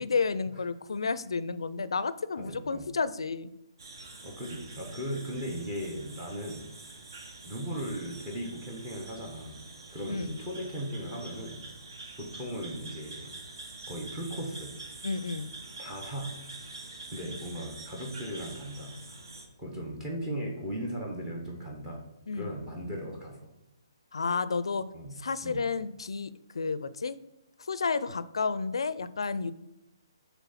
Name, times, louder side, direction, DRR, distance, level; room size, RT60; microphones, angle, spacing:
voice 1, 0.0-3.5 10.1-10.4 15.0-15.5 22.3-22.6 24.1-24.8 25.2-27.2 27.7-29.5, left 4 dB, 85° left, 15 dB, 0.4 m, -31 dB
voice 2, 2.4-2.9 4.2-6.6 7.4-9.6 9.9-11.6 12.2-13.4 13.9-14.8 15.8-16.4 17.1-19.0 19.6-22.0 22.3-23.4 24.9-25.7, equal, 10° right, 0 dB, 0.8 m, -37 dB
sound 1, 3.8-19.5, right 3 dB, 50° right, 1.1 m, -46 dB
6.0 x 3.5 x 5.7 m, 0.89 s
hypercardioid pair, 170°, 3 cm